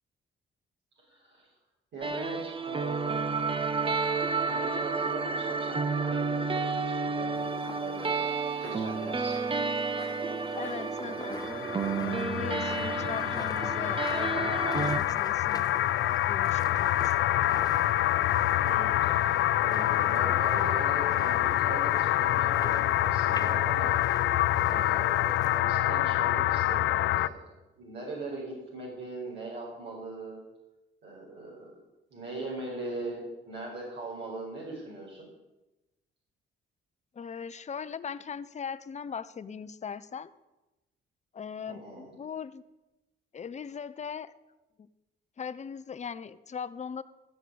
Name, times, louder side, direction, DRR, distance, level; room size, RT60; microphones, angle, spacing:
voice 1, 1.0-1.5 1.9-3.5 4.5-8.3 8.6-9.4 18.6-24.0 24.6-27.4 27.8-30.4 31.0-31.7 32.1-35.3 41.7-42.1, right 2 dB, 65° right, -4 dB, 5.2 m, -40 dB
sound 1, 2.0-15.0, right 4 dB, 25° right, 0.9 m, -31 dB
sound 2, 7.3-25.6, left 3 dB, 20° left, 1.2 m, -46 dB
voice 2, 10.5-11.4 11.9-15.6 16.3-17.2 37.1-40.3 41.3-42.6 43.3-44.3 44.8-44.9 45.4-47.0, left 6 dB, 35° left, 13 dB, 0.8 m, -39 dB
sound 3, 11.3-27.3, left 14 dB, 75° left, 0.5 m, -26 dB
14.0 x 6.5 x 8.8 m, 1.0 s
cardioid pair, 90°, 20 cm